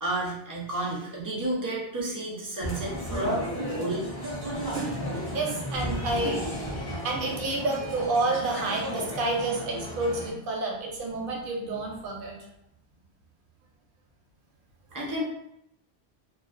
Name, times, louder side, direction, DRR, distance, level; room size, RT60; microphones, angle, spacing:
voice 1, 0.0-3.4 3.7-4.1 14.9-15.2, right 1 dB, 30° right, -4 dB, 0.3 m, -31 dB
sound 1, 2.6-10.3, equal, 25° left, 0.7 m, -33 dB
voice 2, 4.7-12.3, right 2 dB, 60° right, 0 dB, 0.7 m, -30 dB
2.3 x 2.2 x 2.4 m, 0.80 s
omnidirectional pair, 1.1 m